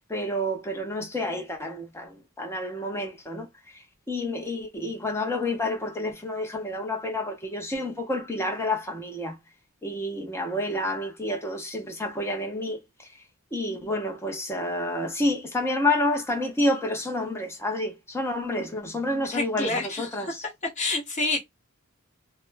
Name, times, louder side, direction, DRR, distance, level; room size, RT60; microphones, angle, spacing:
voice 1, 0.1-3.5 4.1-9.4 9.8-13.1 13.5-20.4, left 1 dB, 10° left, 0.6 m, -29 dB
voice 2, 19.2-20.3 20.8-21.4, left 2 dB, 35° left, 1.1 m, -28 dB
2.4 x 2.0 x 3.3 m
head